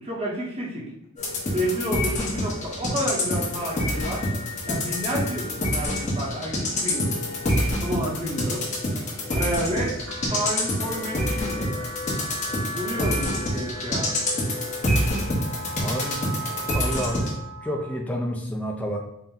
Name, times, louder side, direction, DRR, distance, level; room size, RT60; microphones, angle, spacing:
voice 1, 0.0-0.9 1.5-4.2 4.6-7.2 7.8-8.6 9.3-10.0 10.3-11.7 12.7-14.2, equal, 25° right, -4 dB, 0.8 m, -30 dB
sound 1, 1.2-17.3, left 1 dB, 35° left, 0.8 m, -27 dB
sound 2, 10.1-18.0, right 1 dB, 60° right, 0.4 m, -38 dB
voice 2, 15.8-16.2 16.7-17.3 17.6-19.0, equal, 5° left, 1 dB, 0.4 m, -29 dB
4.3 x 2.1 x 3.7 m, 0.79 s
head